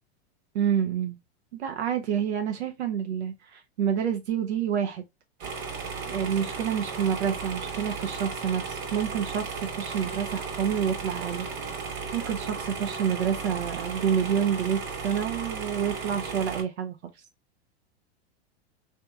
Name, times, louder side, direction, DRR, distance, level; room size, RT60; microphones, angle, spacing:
voice 1, 0.5-1.2 1.5-5.0 6.1-11.5 12.1-17.0, right 8 dB, 90° right, 0.7 m, -28 dB
sound 1, 5.4-16.6, right 5 dB, 70° right, 1.6 m, -35 dB
3.3 x 2.9 x 2.3 m
hypercardioid pair, 120°, 32 cm